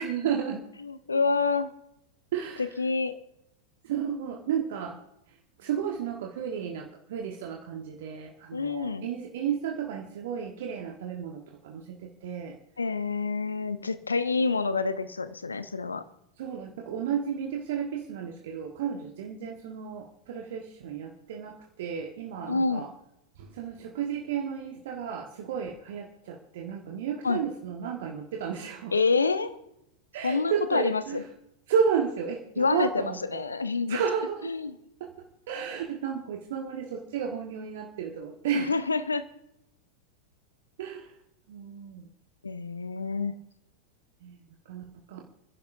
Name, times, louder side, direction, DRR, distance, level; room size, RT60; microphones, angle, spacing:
voice 1, 0.0-0.7 2.3-2.7 3.8-5.0 5.6-12.6 16.4-22.9 23.4-28.9 30.1-31.2 31.7-33.4 33.9-34.5 35.0-35.1 35.5-38.7 40.8-41.1 41.5-42.1 44.2-44.4 44.6-45.2, right 7 dB, 55° right, 1 dB, 1.4 m, -32 dB
voice 2, 0.8-1.7 2.8-3.1 8.5-9.1 12.8-16.0 22.5-22.9 27.2-27.4 28.9-29.6 30.2-31.2 32.6-34.0 34.5-34.7 38.5-39.3 42.4-43.3, left 4 dB, 75° left, 12 dB, 0.8 m, -27 dB
30.0 x 11.0 x 2.7 m, 0.83 s
figure-of-eight pair, 90°, 0 cm